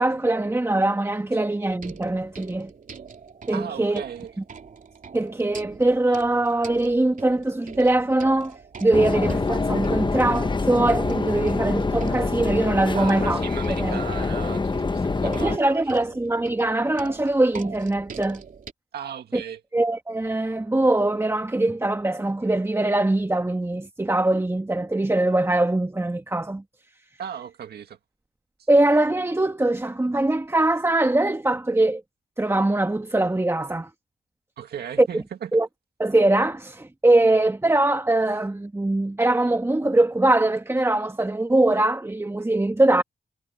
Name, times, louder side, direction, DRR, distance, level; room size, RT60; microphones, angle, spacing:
voice 1, 0.0-2.7 3.5-4.0 5.1-13.4 13.8-14.0 15.2-18.4 19.3-19.4 19.7-26.6 28.7-32.0 32.4-33.9 35.0-35.2 35.5-35.7 36.0-43.0, right 2 dB, 15° right, 1.6 m, -22 dB
sound 1, 1.6-18.7, right 5 dB, 55° right, 3.1 m, -44 dB
voice 2, 3.5-4.3 12.9-15.8 18.9-19.6 27.2-28.0 28.6-28.7 34.6-35.5, right 8 dB, 80° right, 2.1 m, -36 dB
sound 2, 8.9-15.6, left 3 dB, 30° left, 1.1 m, -25 dB
cardioid pair, 60°, 16 cm